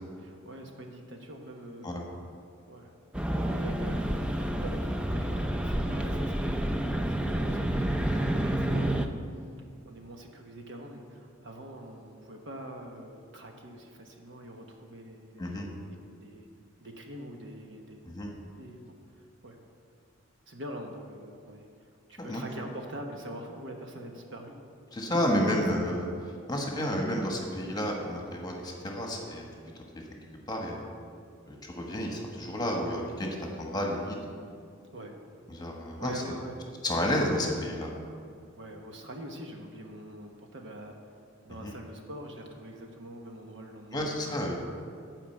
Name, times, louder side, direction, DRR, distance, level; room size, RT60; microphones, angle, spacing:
voice 1, 0.2-1.9 2.7-3.0 3.3-9.2 9.8-15.6 15.9-16.5 16.8-18.1 18.4-19.6 20.5-24.6 25.3-25.4 34.9-35.1 36.0-36.6 38.6-41.2 41.4-44.0, right 1 dB, 60° right, 2 dB, 1.1 m, -44 dB
sound 1, 3.1-9.1, right 1 dB, 5° right, 0.4 m, -29 dB
voice 2, 24.9-26.1 26.5-29.4 30.5-30.8 31.5-34.2 35.5-36.3 36.8-37.9 41.6-41.7 43.9-44.6, equal, 20° left, 0 dB, 1.2 m, -31 dB
11.0 x 5.0 x 7.2 m, 2.3 s
head